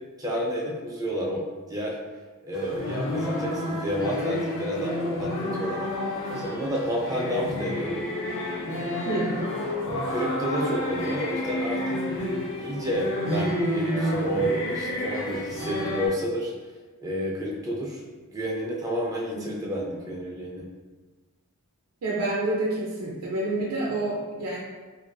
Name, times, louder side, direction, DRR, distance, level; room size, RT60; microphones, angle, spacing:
voice 1, 0.2-2.0 2.4-5.9 6.4-8.0 9.9-12.0 12.6-16.5 17.0-18.0 18.3-20.7, equal, 15° right, -3 dB, 0.4 m, -30 dB
sound 1, 2.5-16.1, left 1 dB, 55° left, 0.4 m, -30 dB
voice 2, 9.0-9.4 19.3-19.6 22.0-24.6, right 2 dB, 90° right, -5 dB, 0.4 m, -28 dB
2.4 x 2.4 x 2.2 m, 1.3 s
head